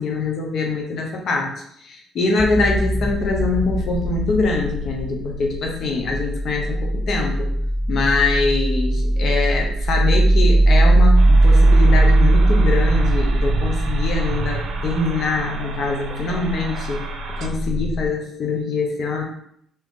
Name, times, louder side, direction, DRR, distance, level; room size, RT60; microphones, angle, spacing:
voice 1, 0.0-7.5 7.9-17.0 17.4-19.2, left 3 dB, 60° left, 1 dB, 0.8 m, -23 dB
sound 1, 2.4-18.1, right 1 dB, 10° left, 0.3 m, -19 dB
sound 2, 11.2-17.5, right 5 dB, 65° right, 0.6 m, -33 dB
3.6 x 2.9 x 3.6 m, 0.70 s
cardioid pair, 85°, 0 cm